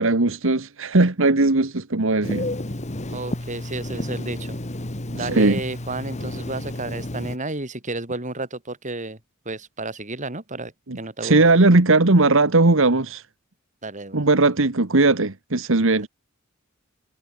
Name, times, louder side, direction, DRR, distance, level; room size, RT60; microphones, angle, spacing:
voice 1, 0.0-2.5 5.1-5.6 10.9-11.0 11.2-13.2 14.1-16.1, right 2 dB, 65° right, 1.5 m, -18 dB
Telephone, 2.2-7.4, left 1 dB, 35° left, 2.0 m, -31 dB
voice 2, 3.1-4.6 5.1-9.2 9.5-11.4 13.8-14.2, right 2 dB, 35° right, 4.1 m, -32 dB
head